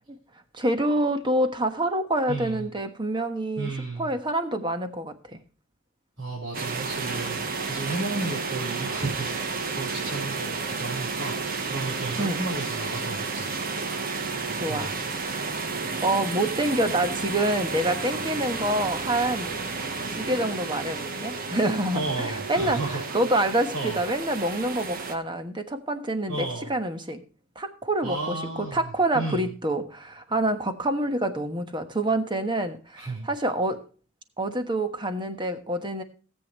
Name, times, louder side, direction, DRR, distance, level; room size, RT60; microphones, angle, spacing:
voice 1, 0.5-5.4 12.2-12.4 14.1-14.3 14.6-14.9 15.2-15.4 15.7-19.6 20.2-27.2 27.5-28.4 28.7-33.8 34.4-36.0, right 1 dB, 20° right, 8 dB, 1.2 m, -27 dB
voice 2, 2.3-2.7 3.6-4.1 6.2-13.5 14.7-14.9 21.9-23.2 23.7-24.0 26.3-26.7 28.0-29.4 33.0-33.3, right 2 dB, 60° right, -4 dB, 3.8 m, -33 dB
sound 1, 6.5-25.2, right 4 dB, 40° right, 1.1 m, -32 dB
17.5 x 8.4 x 3.0 m, 0.37 s
head